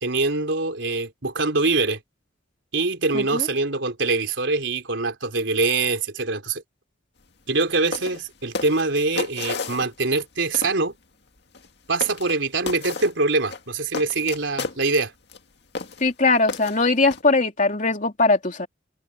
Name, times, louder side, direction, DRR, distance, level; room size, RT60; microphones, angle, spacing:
voice 1, 0.0-2.0 2.7-6.6 7.5-10.9 11.9-15.1, right 3 dB, 70° right, 3.8 m, -24 dB
voice 2, 3.1-3.5 16.0-18.7, left 3 dB, 40° left, 3.2 m, -20 dB
sound 1, 7.5-7.7 7.9-8.2 8.5-10.2 10.5-10.8 11.5-11.7 12.0-12.4 12.7-13.1 13.5-14.8 15.3-15.4 15.7-16.1 16.5-17.2, left 4 dB, 60° left, 2.1 m, -32 dB
open air
head